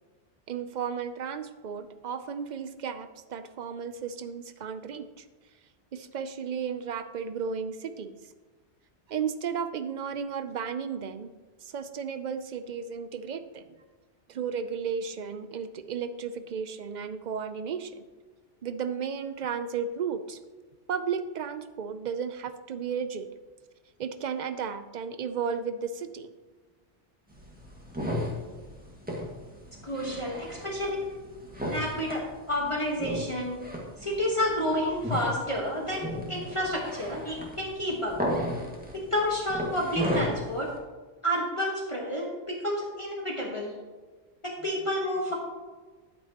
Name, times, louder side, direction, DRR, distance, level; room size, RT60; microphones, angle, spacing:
voice 1, 0.5-5.2 5.9-8.2 9.1-11.3 11.6-13.8 14.3-18.1 18.6-20.4 20.9-23.3 24.0-26.3, right 6 dB, 55° right, 11 dB, 0.5 m, -34 dB
sound 1, 27.3-40.8, equal, 10° right, 1.7 m, -35 dB
voice 2, 29.8-31.0 31.7-32.2 32.5-33.6 34.0-38.1 38.9-40.7 41.2-43.7 44.4-45.3, equal, 30° left, -3 dB, 1.4 m, -30 dB
10.5 x 9.1 x 2.9 m, 1.3 s
omnidirectional pair, 1.2 m